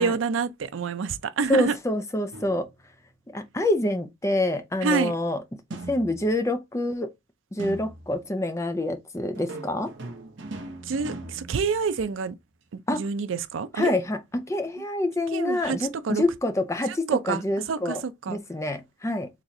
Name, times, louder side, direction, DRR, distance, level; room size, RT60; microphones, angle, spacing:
voice 1, 0.0-1.7 4.8-5.1 10.9-12.3 12.7-13.9 15.3-15.8 16.0-16.2 17.1-17.4 17.7-18.4, right 5 dB, 90° right, 0.5 m, -27 dB
voice 2, 1.5-2.7 3.3-5.4 5.7-7.1 7.5-9.9 12.9-13.0 13.8-18.0 18.3-19.3, left 1 dB, 15° left, 0.5 m, -26 dB
sound 1, 2.3-3.0 5.7-6.6 7.6-8.3 9.3-12.3, right 2 dB, 70° right, 0.9 m, -40 dB
3.9 x 3.0 x 2.7 m
head